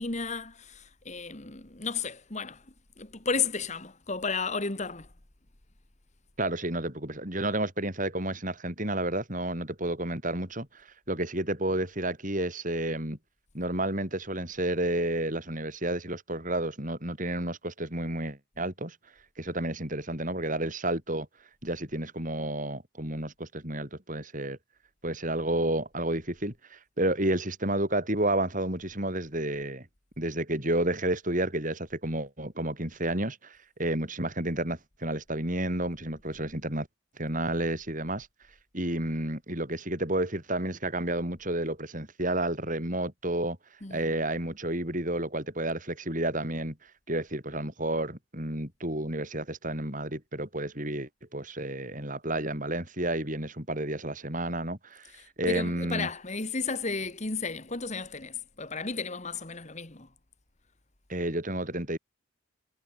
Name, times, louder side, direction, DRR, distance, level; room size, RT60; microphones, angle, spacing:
voice 1, 0.0-2.6 3.0-5.1 43.8-44.1 55.1-60.1, left 4 dB, 35° left, 1.9 m, -33 dB
voice 2, 6.4-10.7 11.1-13.2 13.5-19.0 19.4-21.3 21.6-24.6 25.0-29.9 30.2-36.9 37.2-38.3 38.7-43.6 43.9-46.7 47.1-55.1 55.4-56.1 61.1-62.0, right 1 dB, 40° right, 6.8 m, -31 dB
head